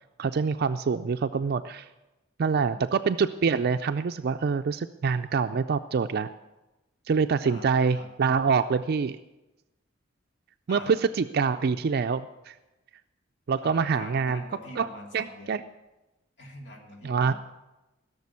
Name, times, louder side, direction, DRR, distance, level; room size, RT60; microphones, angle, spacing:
voice 1, 0.2-1.9 2.4-6.3 7.1-9.2 10.7-12.5 13.5-14.4 14.8-14.9 15.1-15.6 17.0-17.3, right 5 dB, 55° right, 9 dB, 0.4 m, -25 dB
voice 2, 7.4-8.1 10.7-10.9 13.6-15.6 16.4-17.3, left 1 dB, 65° left, 0 dB, 2.7 m, -44 dB
16.5 x 6.7 x 8.4 m, 1.0 s
head